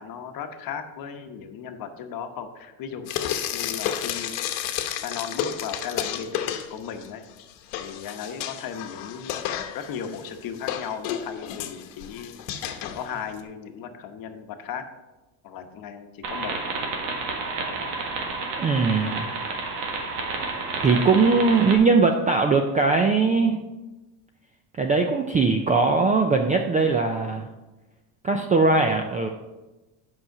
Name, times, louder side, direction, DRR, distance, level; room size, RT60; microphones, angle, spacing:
voice 1, 0.0-3.1 3.5-4.5 5.0-7.2 7.8-9.5 9.7-12.4 12.9-14.9 15.4-16.6, left 7 dB, 45° left, 7 dB, 1.0 m, -36 dB
Frying (food), 3.1-7.1 7.4-13.4, left 10 dB, 70° left, 1.0 m, -32 dB
sound 1, 16.2-21.8, right 3 dB, 80° right, 1.8 m, -30 dB
voice 2, 18.6-19.3 20.8-23.6 24.8-27.5 28.2-29.3, right 4 dB, 20° right, 4 dB, 0.3 m, -20 dB
7.9 x 5.7 x 5.8 m, 1.1 s
cardioid pair, 130°, 48 cm